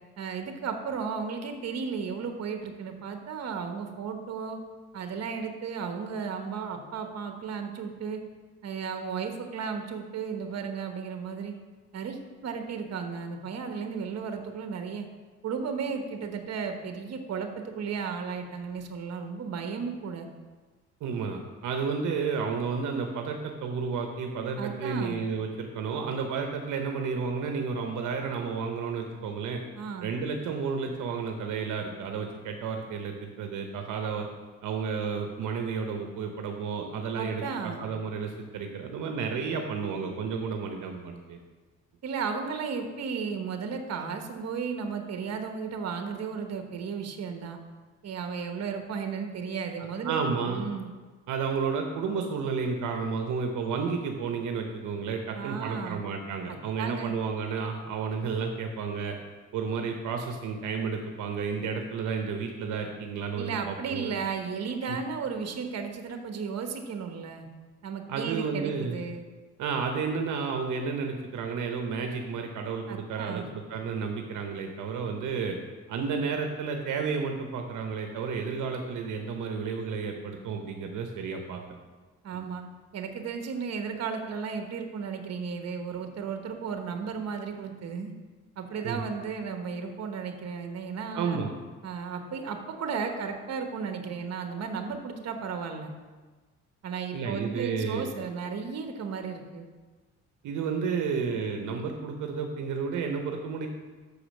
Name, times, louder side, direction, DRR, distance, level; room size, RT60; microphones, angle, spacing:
voice 1, 0.2-4.6 4.9-8.2 8.6-11.5 11.9-15.1 15.4-20.3 24.6-25.2 29.8-30.1 37.1-37.8 42.0-47.6 48.0-50.2 50.5-50.9 55.3-56.0 56.5-57.1 63.3-67.5 67.8-69.2 72.9-73.5 82.2-82.7 82.9-88.1 88.6-91.4 91.8-95.9 96.8-99.7, right 6 dB, 55° right, 6 dB, 1.1 m, -34 dB
voice 2, 21.0-29.6 30.0-34.3 34.6-41.4 50.0-50.7 51.3-59.2 59.5-64.1 64.9-65.0 68.1-69.0 69.6-75.6 75.9-81.8 82.3-82.4 88.8-89.0 91.1-91.5 97.1-98.1 100.4-103.7, right 5 dB, 80° right, 4 dB, 0.9 m, -31 dB
6.6 x 5.0 x 6.4 m, 1.3 s
cardioid pair, 90°, 30 cm